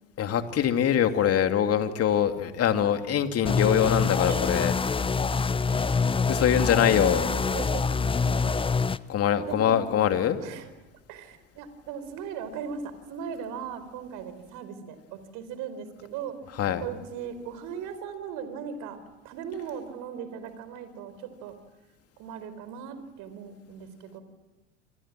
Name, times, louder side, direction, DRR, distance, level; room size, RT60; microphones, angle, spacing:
voice 1, 0.2-4.8 6.3-7.3 9.1-10.4 16.6-16.8, left 9 dB, 40° left, 7 dB, 2.7 m, -23 dB
sound 1, 3.5-9.0, left 4 dB, 15° left, 0.8 m, -25 dB
voice 2, 4.3-4.7 5.6-5.9 6.4-8.4 9.4-9.8 10.4-10.7 11.1-16.4 16.7-19.0 19.2-21.5 22.2-24.2, right 7 dB, 55° right, 11 dB, 4.6 m, -38 dB
28.5 x 27.0 x 7.6 m, 1.1 s
figure-of-eight pair, 70°, 36 cm